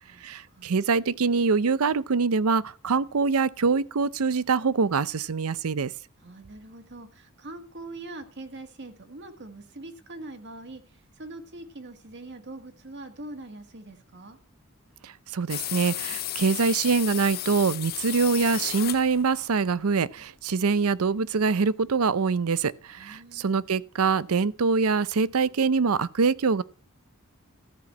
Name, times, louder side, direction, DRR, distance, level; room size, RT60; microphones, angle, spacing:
voice 1, 0.2-5.9 15.0-26.6, right 5 dB, 85° right, 0.6 m, -24 dB
voice 2, 6.2-14.4 23.0-23.5, right 2 dB, 55° right, 1.6 m, -43 dB
sound 1, 15.5-19.5, left 14 dB, 45° left, 0.5 m, -33 dB
13.5 x 6.0 x 8.4 m
head